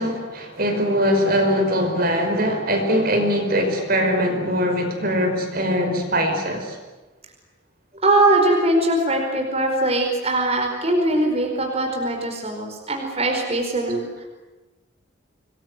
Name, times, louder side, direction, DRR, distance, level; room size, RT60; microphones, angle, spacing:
voice 1, 0.0-6.8, equal, 50° right, 4 dB, 5.1 m, -21 dB
voice 2, 8.0-14.2, right 2 dB, 30° right, 2 dB, 4.8 m, -21 dB
27.0 x 21.0 x 9.7 m, 1.2 s
head